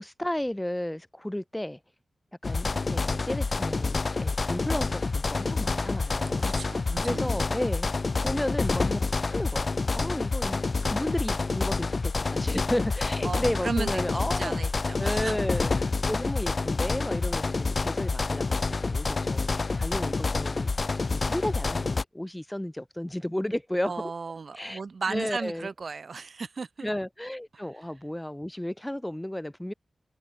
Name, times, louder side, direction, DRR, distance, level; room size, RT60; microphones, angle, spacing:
voice 1, 0.0-1.8 2.4-6.5 7.0-7.9 8.2-10.6 10.9-14.6 15.0-20.7 21.1-23.9 24.5-24.8 25.1-25.7 26.8-29.7, left 1 dB, 5° left, 1.6 m, -33 dB
sound 1, 2.4-22.0, left 3 dB, 40° left, 0.4 m, -28 dB
voice 2, 6.4-7.3 13.2-15.3 19.8-19.9 23.8-26.9, right 4 dB, 50° right, 1.8 m, -35 dB
wide cardioid pair, 145°, 0 cm